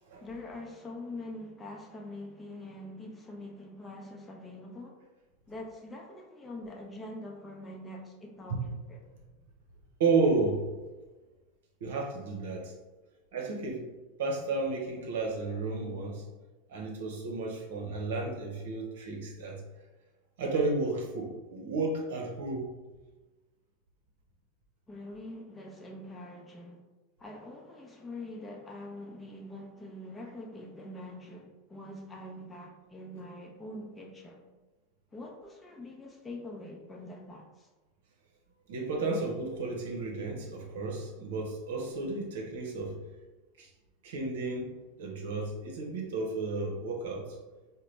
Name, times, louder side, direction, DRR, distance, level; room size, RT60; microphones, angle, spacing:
voice 1, 0.2-5.0 5.5-9.0 24.9-26.8 27.2-34.5 35.1-37.7, left 1 dB, 15° left, 0.7 m, -44 dB
voice 2, 10.0-10.6 11.8-12.7 13.3-13.8 14.2-16.2 16.7-19.6 20.4-22.7 38.7-42.9 43.6-43.7 44.0-44.7 45.0-47.3, right 3 dB, 70° right, 0.7 m, -32 dB
3.9 x 2.2 x 3.2 m
hypercardioid pair, 90°, 0 cm